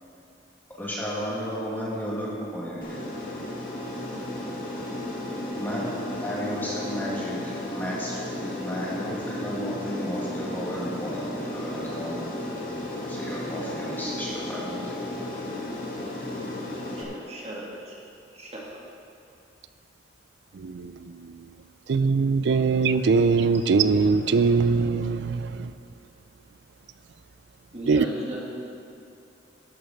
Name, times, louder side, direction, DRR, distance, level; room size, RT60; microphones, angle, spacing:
voice 1, 0.7-3.0 5.5-5.9 6.2-12.2 13.1-15.0, equal, 10° left, 1.8 m, -33 dB
Aircraft, 2.8-17.0, left 1 dB, 50° left, 1.7 m, -34 dB
voice 2, 17.0-18.0 18.3-18.8 27.7-28.4, right 1 dB, 35° right, 2.2 m, -37 dB
voice 3, 20.5-21.4 21.9-25.7 27.9-28.1, right 4 dB, 70° right, 0.4 m, -22 dB
12.0 x 6.5 x 6.4 m
head